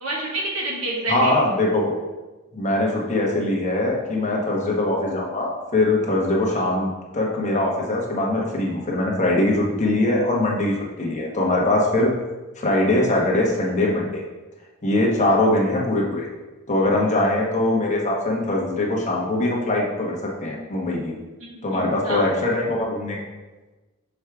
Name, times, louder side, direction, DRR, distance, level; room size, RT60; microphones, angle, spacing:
voice 1, 0.0-1.4 21.4-22.2, right 2 dB, 75° right, -3 dB, 1.6 m, -28 dB
voice 2, 1.1-1.9 2.5-12.1 12.6-14.2 14.8-16.3 16.7-21.1 21.6-23.2, left 2 dB, 35° left, -1 dB, 1.0 m, -22 dB
6.2 x 4.7 x 3.5 m, 1.2 s
head